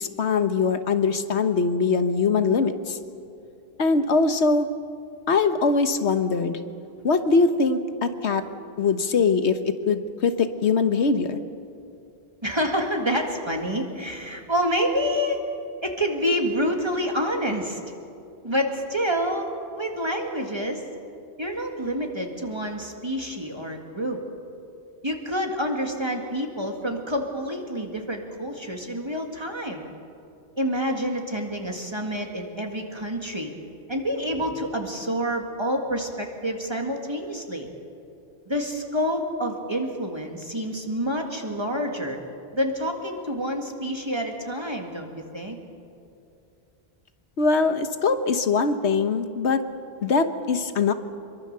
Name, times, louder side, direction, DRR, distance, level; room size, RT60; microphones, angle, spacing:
voice 1, 0.0-3.0 3.8-4.7 5.3-6.6 7.0-8.5 8.8-11.4 47.4-49.6 50.0-50.9, left 4 dB, 85° left, 9 dB, 1.4 m, -22 dB
voice 2, 12.4-15.4 15.8-17.8 18.4-20.9 21.4-24.2 25.0-29.9 30.6-33.5 33.9-37.7 38.5-42.2 42.5-45.6, equal, 25° right, 2 dB, 2.0 m, -28 dB
25.0 x 22.5 x 6.8 m, 2.6 s
omnidirectional pair, 1.1 m